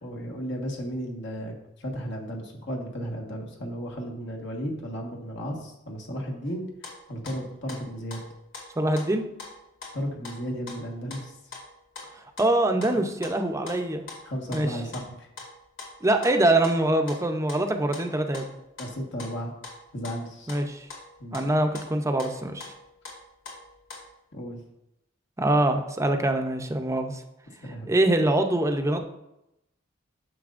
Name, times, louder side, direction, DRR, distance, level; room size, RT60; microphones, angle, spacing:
voice 1, 0.0-6.7 7.1-8.2 9.9-11.3 14.2-15.3 18.8-19.5 19.9-20.5 21.2-21.5 24.3-24.6 27.6-27.9, equal, 65° left, 0 dB, 1.5 m, -34 dB
sound 1, 6.4-24.1, left 3 dB, 90° left, 2.3 m, -43 dB
voice 2, 8.8-9.2 12.4-14.0 14.5-14.8 16.0-18.5 20.5-20.9 21.3-22.7 25.4-27.2 27.9-29.0, right 1 dB, 15° right, 5 dB, 0.6 m, -24 dB
9.4 x 6.5 x 2.5 m, 0.87 s
head